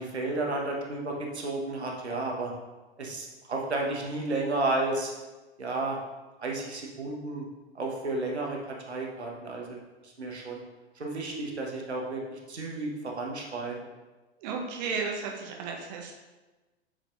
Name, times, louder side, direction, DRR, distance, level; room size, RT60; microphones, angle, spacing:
voice 1, 0.0-2.5 3.0-5.1 5.6-6.0 6.4-7.5 7.7-9.8 10.0-10.6 10.9-13.8, right 2 dB, 75° right, 0 dB, 1.3 m, -32 dB
voice 2, 14.4-16.2, right 5 dB, 40° right, 1 dB, 1.1 m, -34 dB
7.4 x 5.2 x 2.6 m, 1.2 s
figure-of-eight pair, 100°, 33 cm